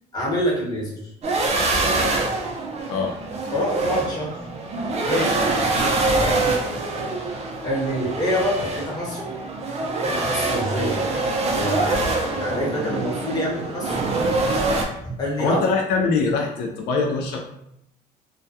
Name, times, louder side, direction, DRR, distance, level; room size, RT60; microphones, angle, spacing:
voice 1, 0.1-1.1 1.8-2.1 3.5-4.4 5.0-6.6 7.6-9.3 10.0-11.0 11.5-14.0 15.0-15.6, equal, 25° left, -5 dB, 1.0 m, -27 dB
sound 1, 1.2-14.8, right 2 dB, 40° right, 0.5 m, -24 dB
voice 2, 15.4-17.4, left 4 dB, 90° left, 1 dB, 0.4 m, -23 dB
2.3 x 2.2 x 2.6 m, 0.80 s
cardioid pair, 110°, 17 cm